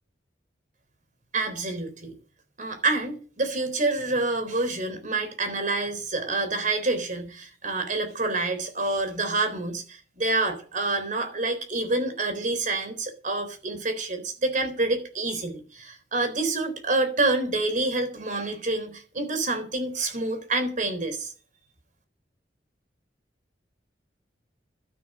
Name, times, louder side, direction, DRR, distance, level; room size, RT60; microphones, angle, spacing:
voice 1, 1.3-2.1 2.6-21.3, right 2 dB, 45° right, 9 dB, 3.9 m, -27 dB
12.5 x 11.0 x 6.3 m, 0.39 s
head